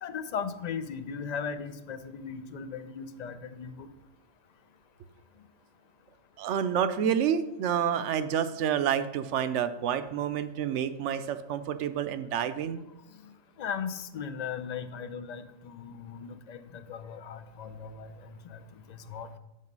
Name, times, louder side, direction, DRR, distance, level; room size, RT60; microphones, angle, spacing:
voice 1, 0.0-3.9 13.6-18.1 18.5-18.6 19.1-19.3, left 6 dB, 60° left, 11 dB, 0.4 m, -37 dB
voice 2, 6.4-12.8, right 8 dB, 75° right, 11 dB, 0.9 m, -29 dB
7.6 x 5.5 x 5.3 m, 0.95 s
omnidirectional pair, 1.3 m